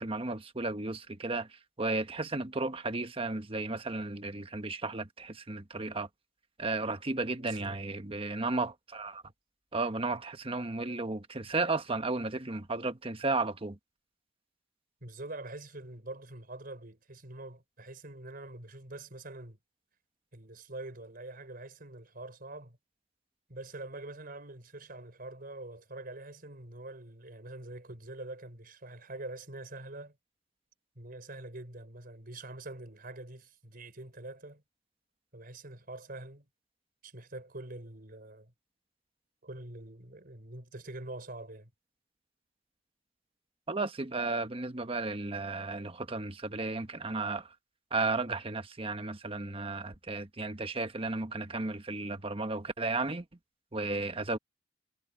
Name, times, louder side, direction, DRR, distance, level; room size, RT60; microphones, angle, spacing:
voice 1, 0.0-6.1 6.6-9.2 9.7-13.8 43.7-47.5 47.9-53.2 53.7-54.4, right 3 dB, 30° right, 1.2 m, -34 dB
voice 2, 7.3-7.8 15.0-19.6 20.3-22.8 23.5-30.2 30.9-34.6 35.3-36.5 37.0-38.5 39.4-41.7, right 2 dB, 55° right, 4.5 m, -45 dB
head